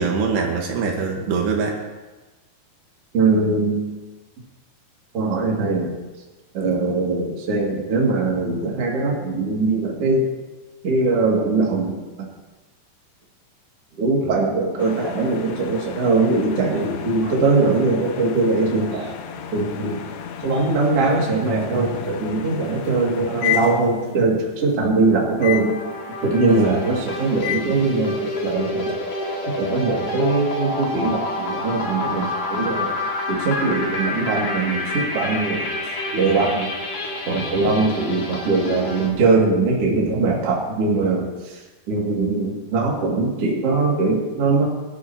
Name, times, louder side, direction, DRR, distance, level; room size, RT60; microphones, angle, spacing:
voice 1, 0.0-1.8 26.5-26.8 37.7-37.9, right 5 dB, 75° right, 0 dB, 3.4 m, -23 dB
voice 2, 3.1-3.8 5.1-5.9 6.5-10.3 10.8-12.3 14.0-19.1 19.5-20.0 20.4-25.8 26.2-28.9 29.5-35.7 36.1-36.7 37.3-41.6 41.9-44.6, right 3 dB, 40° right, -3 dB, 2.7 m, -21 dB
sound 1, 14.8-24.3 25.4-25.8 27.4-27.8, left 10 dB, 75° left, 2.7 m, -32 dB
sound 2, 25.4-39.1, left 2 dB, 55° left, 3.4 m, -28 dB
22.5 x 12.5 x 2.9 m, 1.2 s
omnidirectional pair, 5.1 m